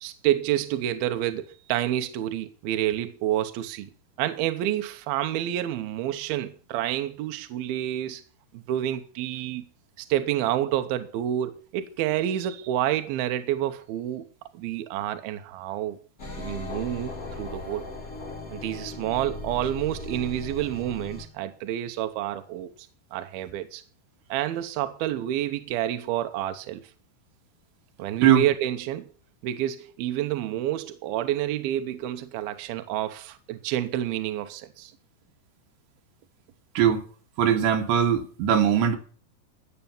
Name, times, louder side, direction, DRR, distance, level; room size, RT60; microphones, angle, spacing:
voice 1, 0.0-3.9 4.2-8.2 8.5-9.7 10.0-14.3 14.5-16.0 16.4-17.9 18.5-22.7 23.1-23.8 24.3-26.8 28.0-29.1 29.4-34.9, right 12 dB, 75° right, 2.6 m, -29 dB
sound 1, 16.2-21.3, left 3 dB, 35° left, 1.6 m, -38 dB
voice 2, 37.4-39.0, right 9 dB, 90° right, 3.9 m, -20 dB
13.0 x 7.7 x 7.1 m
omnidirectional pair, 4.8 m